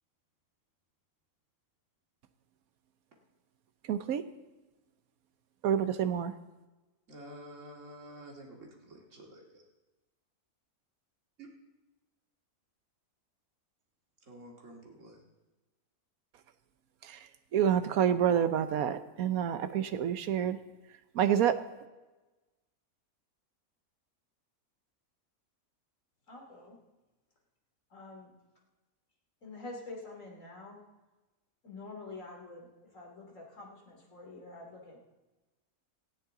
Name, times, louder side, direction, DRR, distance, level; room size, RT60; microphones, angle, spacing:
voice 1, 3.9-4.2 5.6-6.3 17.0-17.2 17.5-20.6 21.1-21.6, right 9 dB, 75° right, 11 dB, 1.3 m, -28 dB
voice 2, 7.1-9.6 11.4-11.5 14.2-15.2, right 1 dB, 55° right, -1 dB, 2.6 m, -50 dB
voice 3, 26.3-26.8 27.9-28.3 29.4-30.8 31.6-35.0, left 3 dB, 60° left, 0 dB, 3.2 m, -47 dB
18.0 x 14.0 x 3.8 m, 1.1 s
omnidirectional pair, 1.6 m